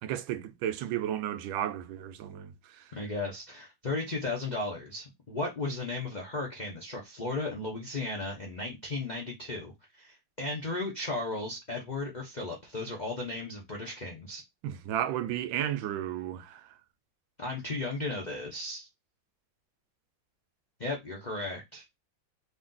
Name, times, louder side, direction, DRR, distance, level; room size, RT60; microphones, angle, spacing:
voice 1, 0.0-2.9 14.6-16.7, right 11 dB, 90° right, 1.3 m, -33 dB
voice 2, 2.9-14.4 17.4-18.9 20.8-21.8, left 2 dB, 65° left, 0.4 m, -35 dB
3.2 x 2.6 x 3.7 m
omnidirectional pair, 2.1 m